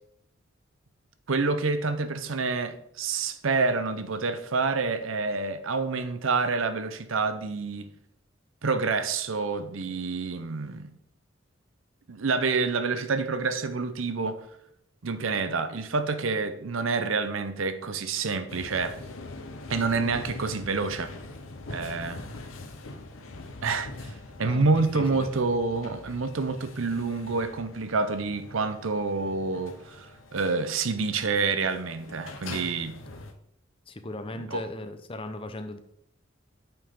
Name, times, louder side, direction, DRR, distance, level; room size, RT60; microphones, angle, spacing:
voice 1, 1.3-7.9 8.6-10.9 12.1-14.5 15.0-19.0 19.7-21.1 21.7-22.2 23.6-24.1 24.4-33.0 34.5-34.6, right 4 dB, 85° right, 0.7 m, -28 dB
sound 1, 18.5-33.3, left 2 dB, 85° left, 0.9 m, -43 dB
voice 2, 24.4-25.3 33.9-35.8, left 1 dB, 30° left, 0.7 m, -38 dB
8.8 x 6.0 x 3.7 m
head